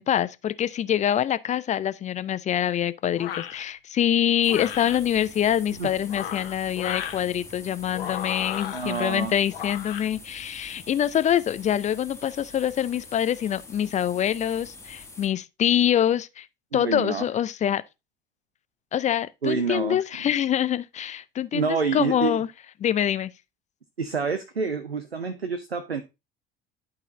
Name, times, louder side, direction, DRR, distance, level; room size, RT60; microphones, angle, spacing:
voice 1, 0.0-16.5 16.7-17.8 18.9-22.5 22.8-23.3, left 10 dB, 25° left, 0.5 m, -25 dB
sound 1, 3.2-3.6 4.4-5.0 6.0-7.2 7.9-9.0 9.5-10.0, left 10 dB, 70° left, 1.0 m, -34 dB
sound 2, 4.4-15.3, left 3 dB, 10° left, 1.7 m, -45 dB
voice 2, 8.7-9.4 16.7-17.2 19.4-20.0 21.5-22.4 24.0-26.0, right 5 dB, 85° right, 0.6 m, -27 dB
11.5 x 4.1 x 3.8 m
figure-of-eight pair, 65°, 30 cm